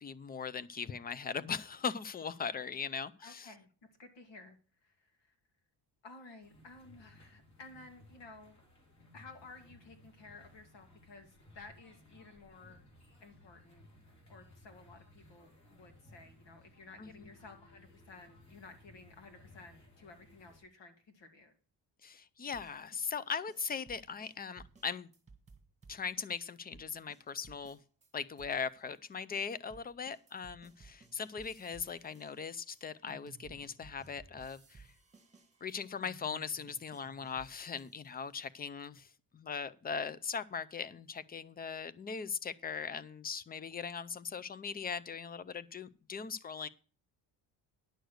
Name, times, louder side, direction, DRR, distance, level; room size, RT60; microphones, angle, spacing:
voice 1, 0.0-3.5 17.0-17.3 22.0-25.1 25.9-27.8 28.1-34.9 35.6-39.1 39.3-46.7, left 6 dB, 20° left, 0.4 m, -39 dB
voice 2, 3.2-3.7 4.0-4.6 4.8-5.3 6.0-8.6 9.1-12.8 13.2-13.9 14.3-21.5, left 3 dB, 75° left, 2.6 m, -54 dB
sound 1, 6.4-20.6, left 1 dB, 40° left, 3.8 m, -60 dB
sound 2, 22.5-28.1 28.4-38.1, right 4 dB, 15° right, 1.6 m, -59 dB
10.5 x 6.4 x 6.4 m
cardioid pair, 145°, 43 cm